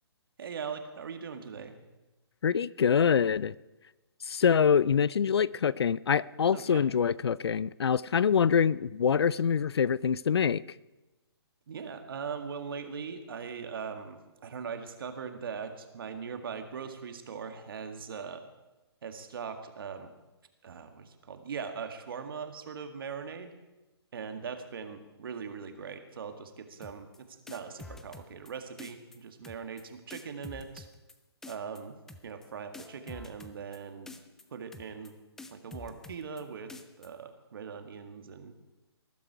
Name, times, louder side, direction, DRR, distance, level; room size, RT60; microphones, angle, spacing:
voice 1, 0.4-1.8 6.5-6.8 11.7-18.4 19.0-20.1 20.6-23.5 24.1-30.9 31.5-34.1 34.5-35.2 35.5-36.7 37.0-38.5, right 6 dB, 55° right, 1.9 m, -40 dB
voice 2, 2.4-3.5 4.2-10.6, left 7 dB, 70° left, 0.5 m, -25 dB
sound 1, 26.8-27.2 27.5-28.5 28.8-29.2 29.4-29.8 30.1-31.1 31.4-31.8 32.1-32.5 32.7-33.8 34.1-34.4 34.7-35.1 35.4-36.4 36.7-37.1, left 3 dB, 5° left, 0.5 m, -47 dB
19.5 x 11.5 x 4.7 m
hypercardioid pair, 150°, 14 cm